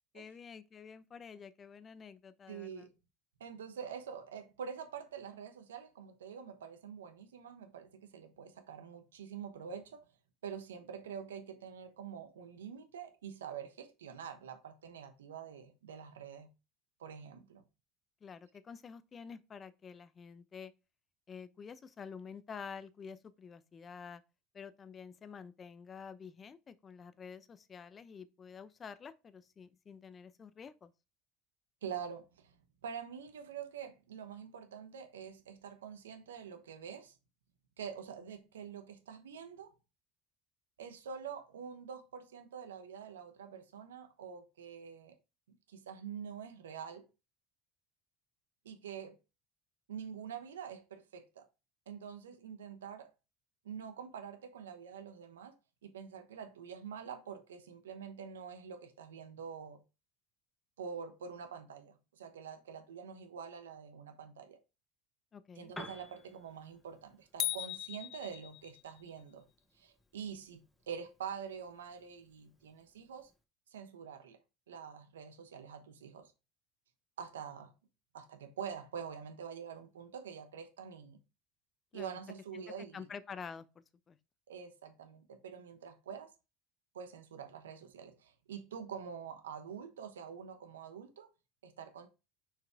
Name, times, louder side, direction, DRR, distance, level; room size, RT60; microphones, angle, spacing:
voice 1, 0.1-2.9 18.2-20.7 21.3-24.2 24.5-30.9 65.3-65.7 81.9-82.1 82.5-82.6 82.9-83.7 84.1-84.2, left 6 dB, 35° left, 0.7 m, -49 dB
voice 2, 2.5-2.9 3.4-10.0 10.4-16.5 17.0-17.6 31.8-32.5 32.8-37.1 37.8-39.7 40.8-45.1 45.7-47.1 48.6-49.1 49.9-51.5 51.9-53.1 53.6-55.5 55.8-59.8 60.8-64.6 65.6-69.4 69.7-70.6 70.9-73.3 73.7-74.4 74.7-76.3 77.2-77.7 78.1-81.2 81.9-83.1 84.5-86.3 86.9-91.3 91.6-92.1, right 7 dB, 90° right, 1.0 m, -46 dB
Piano, 65.6-73.4, left 1 dB, 10° left, 1.5 m, -56 dB
sound 1, 67.4-69.0, left 16 dB, 60° left, 0.4 m, -38 dB
6.3 x 4.7 x 3.6 m
hypercardioid pair, 75°, 0 cm